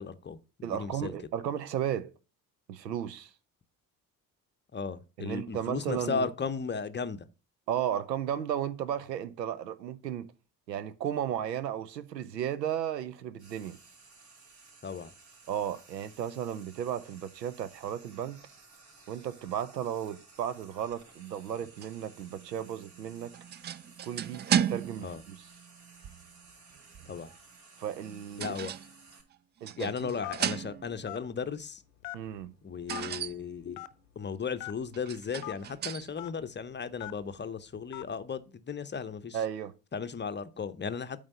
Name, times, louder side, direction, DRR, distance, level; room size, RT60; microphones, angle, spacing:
voice 1, 0.0-1.1 4.7-7.2 14.8-15.1 25.0-25.2 27.1-27.3 28.4-28.7 29.8-31.8 32.6-33.8 34.2-39.4 39.9-41.2, left 5 dB, 20° left, 0.7 m, -36 dB
voice 2, 0.6-2.1 2.7-3.3 5.2-6.3 7.7-10.3 10.7-13.8 15.5-18.4 19.1-23.4 24.0-25.4 27.8-28.6 29.6-30.1 32.1-32.5 39.3-39.7, right 10 dB, 85° right, 0.7 m, -34 dB
Frying (food), 13.4-29.2, right 4 dB, 50° right, 3.1 m, -56 dB
sound 1, 21.6-27.3 27.9-29.3 29.7-31.1 32.9-33.5 34.9-36.1, right 9 dB, 25° right, 0.3 m, -35 dB
Telephone, 30.2-30.5 31.1-31.2 32.0-32.4 32.9-33.0 33.7-33.9 34.6-34.7 35.4-35.5 36.2-36.3 37.0-37.2 37.9-38.1, left 18 dB, 75° left, 0.7 m, -39 dB
8.7 x 3.5 x 6.6 m
figure-of-eight pair, 50°, 49 cm